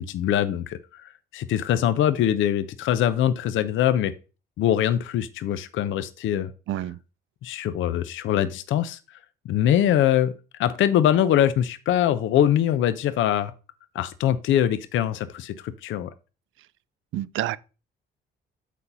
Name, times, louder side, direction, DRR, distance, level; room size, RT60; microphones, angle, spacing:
voice 1, 0.0-4.1 4.6-6.5 7.4-9.0 9.5-10.3 10.6-13.5 13.9-16.1, left 10 dB, 75° left, 0.6 m, -23 dB
voice 2, 6.7-7.0 17.1-17.6, right 13 dB, 80° right, 0.5 m, -28 dB
8.3 x 4.1 x 5.4 m
cardioid pair, 90°, 20 cm